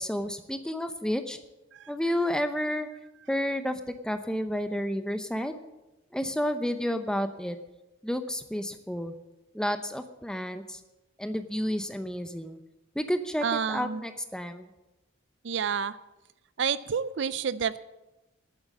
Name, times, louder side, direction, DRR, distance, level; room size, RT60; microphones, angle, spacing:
voice 1, 0.0-1.4 1.9-2.9 3.3-5.6 6.1-7.6 8.0-9.2 9.5-10.8 11.2-12.6 12.9-14.7, equal, 5° left, 8 dB, 0.8 m, -31 dB
voice 2, 13.4-14.0 15.4-16.0 16.6-17.8, right 6 dB, 60° right, 16 dB, 0.4 m, -29 dB
11.5 x 8.7 x 8.5 m, 0.99 s
head